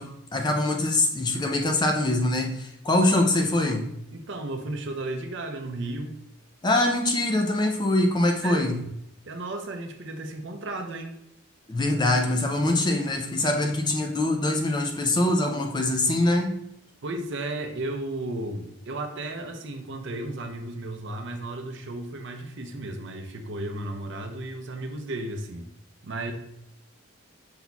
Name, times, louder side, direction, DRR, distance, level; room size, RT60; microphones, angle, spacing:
voice 1, 0.0-3.9 6.6-8.8 11.7-16.6, left 2 dB, 20° left, 0.4 m, -24 dB
voice 2, 4.1-6.1 8.4-8.9 9.3-11.1 17.0-25.7 26.0-26.3, right 2 dB, 55° right, 0.6 m, -34 dB
5.6 x 4.0 x 2.3 m
head